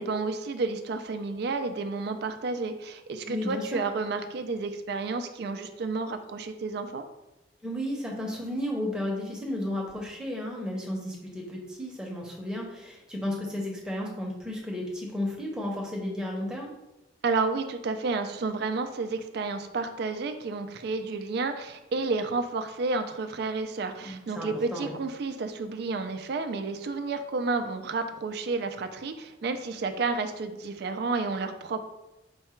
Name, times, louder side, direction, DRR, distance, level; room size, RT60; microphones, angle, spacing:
voice 1, 0.0-7.0 17.2-31.8, right 3 dB, 55° right, 8 dB, 0.3 m, -31 dB
voice 2, 3.3-3.8 7.6-16.7 24.0-24.9, left 1 dB, 5° right, -2 dB, 0.7 m, -33 dB
4.6 x 2.2 x 4.3 m, 0.95 s
head